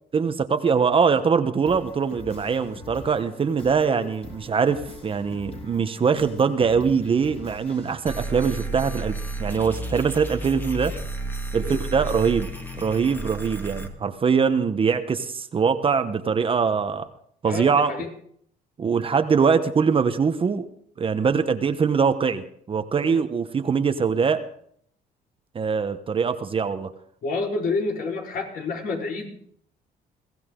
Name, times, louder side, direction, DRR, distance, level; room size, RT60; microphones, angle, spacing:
voice 1, 0.1-10.9 11.5-12.5 12.8-17.1 17.4-17.9 18.8-20.7 21.0-24.4 25.5-26.9, right 6 dB, 30° right, 9 dB, 1.1 m, -23 dB
sound 1, 1.6-8.0, left 2 dB, 35° left, 4.8 m, -43 dB
sound 2, 8.1-13.9, right 2 dB, 10° left, 1.9 m, -32 dB
voice 2, 17.4-18.1 23.0-23.2 27.2-29.3, left 3 dB, 60° left, 0 dB, 4.5 m, -29 dB
22.0 x 16.0 x 3.8 m, 0.64 s
cardioid pair, 110°, 17 cm